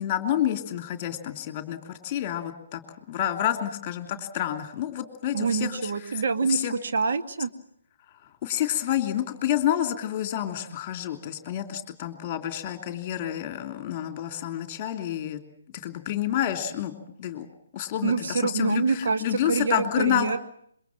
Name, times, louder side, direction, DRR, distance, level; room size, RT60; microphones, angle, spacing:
voice 1, 0.0-2.8 3.1-6.2 6.5-6.7 8.4-15.4 15.7-16.9 17.2-17.5 17.7-20.3, left 11 dB, 25° left, 7 dB, 3.1 m, -29 dB
voice 2, 5.3-7.5 18.0-20.4, right 5 dB, 45° right, 6 dB, 1.9 m, -26 dB
26.5 x 23.5 x 7.4 m, 0.69 s
figure-of-eight pair, 140°, 0 cm